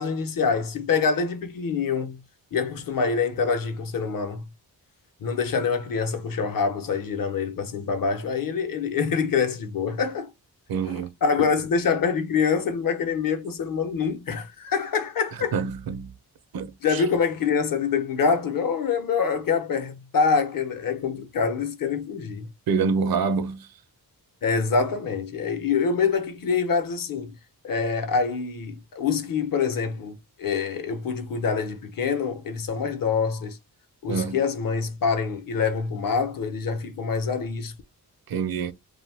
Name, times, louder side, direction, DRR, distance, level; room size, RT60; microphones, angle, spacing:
voice 1, 0.0-2.2 2.5-4.4 5.2-10.3 10.8-15.5 16.8-22.5 24.4-27.3 27.6-33.6 34.0-37.7, left 5 dB, 60° left, 0.8 m, -25 dB
voice 2, 10.7-11.1 15.5-16.1 16.5-17.0 22.7-23.7 34.1-34.4 38.3-38.7, right 5 dB, 65° right, 0.6 m, -26 dB
2.6 x 2.3 x 3.4 m
cardioid pair, 90°, 39 cm